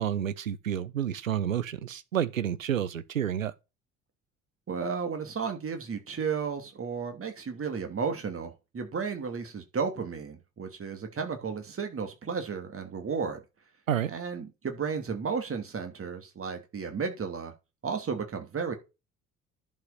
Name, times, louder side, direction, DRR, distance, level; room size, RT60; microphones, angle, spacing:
voice 1, 0.0-3.5 13.9-14.1, right 10 dB, 85° right, 0.7 m, -30 dB
voice 2, 4.7-13.4 14.1-17.5 17.8-18.7, right 5 dB, 35° right, 2.9 m, -33 dB
11.0 x 5.3 x 5.6 m
figure-of-eight pair, 50°, 39 cm